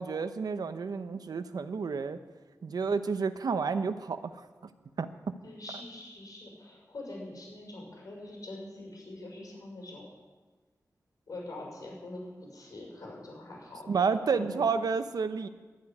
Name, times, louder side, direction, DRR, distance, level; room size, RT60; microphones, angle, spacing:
voice 1, 0.0-2.2 2.6-4.2 5.0-5.3 13.9-15.5, right 5 dB, 85° right, 10 dB, 0.8 m, -30 dB
voice 2, 5.4-10.1 11.3-14.7, left 2 dB, 70° left, -2 dB, 6.0 m, -44 dB
12.0 x 8.5 x 9.8 m, 1.3 s
wide cardioid pair, 100°, 6 cm